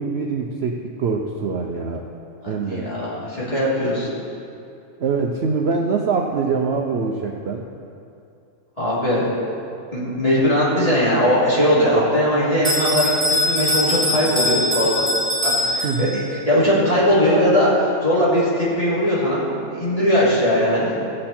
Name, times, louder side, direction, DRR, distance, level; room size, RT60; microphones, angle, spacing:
voice 1, 0.0-2.0 2.5-2.9 5.0-7.6 15.8-16.2, right 4 dB, 55° right, 1 dB, 0.8 m, -24 dB
voice 2, 2.4-4.2 8.8-9.3 9.9-15.1 15.4-16.1 16.5-21.0, equal, 25° left, -9 dB, 3.1 m, -19 dB
Bell, 12.6-16.4, left 1 dB, 5° left, 3.1 m, -22 dB
15.5 x 7.6 x 4.4 m, 2.6 s
omnidirectional pair, 1.5 m